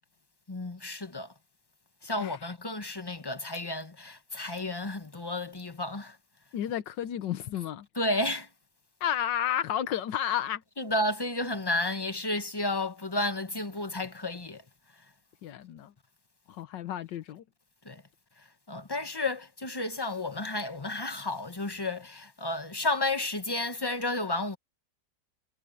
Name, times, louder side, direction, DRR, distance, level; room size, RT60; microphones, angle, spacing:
voice 1, 0.5-1.3 2.0-6.1 7.9-8.5 10.8-14.6 17.9-18.0 18.7-24.6, left 2 dB, 15° left, 0.9 m, -32 dB
voice 2, 6.5-7.9 9.0-10.6 15.4-15.9 16.5-17.4, left 10 dB, 85° left, 1.6 m, -31 dB
omnidirectional pair, 1.9 m